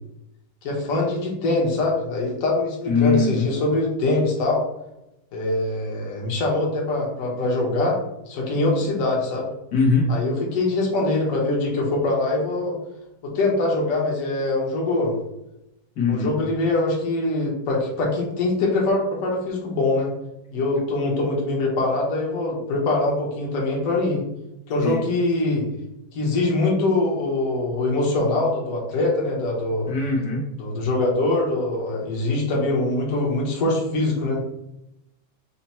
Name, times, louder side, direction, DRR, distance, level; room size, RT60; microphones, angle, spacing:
voice 1, 0.6-4.6 5.3-8.0 8.3-9.5 10.1-12.8 13.2-15.1 16.1-20.1 20.5-24.2 24.7-25.6 26.1-29.9 30.6-34.4, left 2 dB, 60° left, -2 dB, 1.4 m, -23 dB
voice 2, 2.9-3.5 9.7-10.1 16.0-16.3 24.8-25.0 29.9-30.4, left 5 dB, 85° left, -2 dB, 1.7 m, -21 dB
5.6 x 2.2 x 4.2 m, 0.87 s
omnidirectional pair, 1.7 m